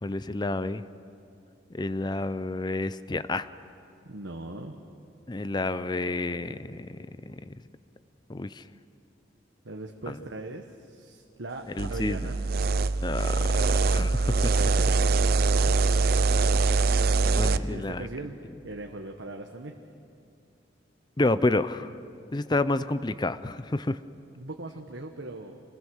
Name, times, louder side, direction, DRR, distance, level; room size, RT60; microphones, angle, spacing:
voice 1, 0.0-0.8 1.7-3.5 5.3-7.0 7.3-7.5 8.3-8.6 10.1-10.2 11.8-12.2 13.0-13.4 13.8-14.8 17.4-18.1 21.2-21.9 22.3-24.0, left 2 dB, 25° left, 14 dB, 0.5 m, -29 dB
voice 2, 4.1-4.7 9.6-12.4 14.5-15.1 17.2-18.4 18.6-19.7 24.4-25.6, right 2 dB, 85° right, 3 dB, 1.2 m, -40 dB
sound 1, 11.8-17.6, right 3 dB, 55° right, 0.5 m, -23 dB
27.0 x 21.0 x 6.4 m, 2.5 s
head